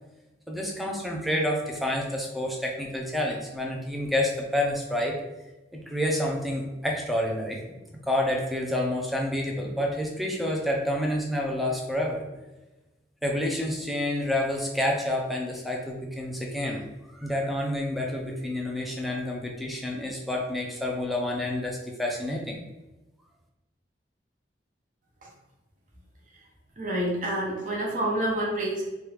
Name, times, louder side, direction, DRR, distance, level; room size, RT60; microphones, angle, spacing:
voice 1, 0.5-5.2 5.9-7.8 8.1-12.2 13.2-16.9 17.1-22.6, left 1 dB, ahead, -1 dB, 0.4 m, -28 dB
voice 2, 26.8-28.8, right 1 dB, 45° right, -2 dB, 0.8 m, -28 dB
3.1 x 2.3 x 3.3 m, 1.1 s
head